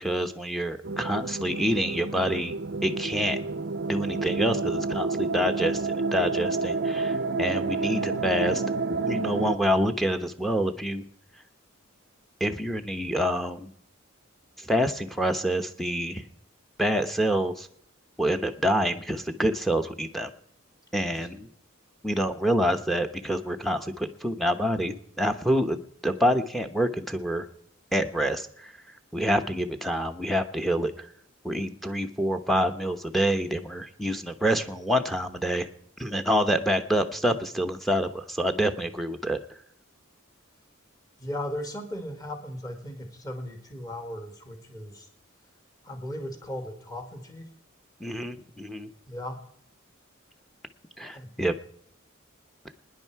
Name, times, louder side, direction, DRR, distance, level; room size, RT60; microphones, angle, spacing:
voice 1, 0.0-2.6 2.8-3.4 3.9-8.6 8.9-11.0 12.4-13.7 14.6-16.2 16.8-17.7 18.2-20.3 20.9-21.5 22.0-27.5 27.9-28.7 29.1-31.1 31.4-35.7 36.0-39.4 48.0-48.9 51.0-51.5, equal, ahead, 7 dB, 0.9 m, -27 dB
sound 1, 0.8-9.6, right 3 dB, 55° right, 0.6 m, -29 dB
voice 2, 41.2-45.1 45.8-47.5 49.1-49.4 51.1-51.3, left 1 dB, 20° left, 5 dB, 2.0 m, -37 dB
22.5 x 10.5 x 4.7 m, 0.66 s
head